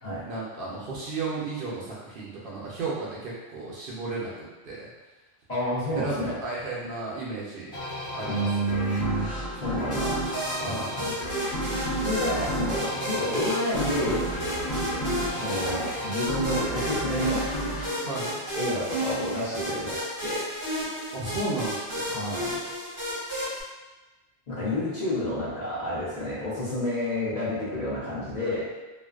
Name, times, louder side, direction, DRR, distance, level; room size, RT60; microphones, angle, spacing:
voice 1, 0.3-4.3 4.6-4.9 6.0-7.7 8.1-8.5 10.6-11.0 18.1-18.3 21.1-22.2 24.5-25.1, right 3 dB, 60° right, -6 dB, 0.7 m, -33 dB
voice 2, 5.5-6.4 8.3-10.3 10.6-11.1 12.0-14.3 15.3-17.5 18.5-20.5 22.1-22.6 24.5-28.7, left 1 dB, 45° left, -9 dB, 0.7 m, -30 dB
sound 1, 7.7-19.0, right 1 dB, 75° left, 0.9 m, -32 dB
sound 2, 9.9-23.6, equal, 20° right, 0.7 m, -33 dB
2.5 x 2.2 x 2.3 m, 1.2 s
omnidirectional pair, 1.1 m